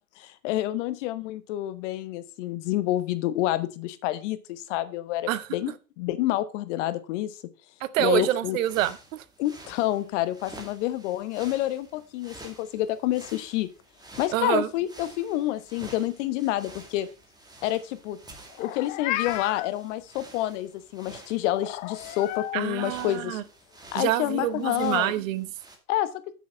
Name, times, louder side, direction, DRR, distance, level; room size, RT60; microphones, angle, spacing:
voice 1, 0.2-7.4 8.0-8.6 9.4-13.7 14.2-17.1 17.6-18.2 18.6-23.4 23.9-25.1 25.9-26.1, left 14 dB, 50° left, 13 dB, 1.2 m, -28 dB
voice 2, 7.8-9.2 14.3-14.7 22.5-23.4 23.9-25.5, right 13 dB, 60° right, 15 dB, 1.0 m, -26 dB
sound 1, 8.4-25.8, right 2 dB, 10° right, 2.2 m, -49 dB
Meow, 18.5-19.7 21.5-22.6, left 15 dB, 20° left, 0.3 m, -33 dB
8.4 x 6.3 x 5.1 m, 0.33 s
hypercardioid pair, 100°, 45 cm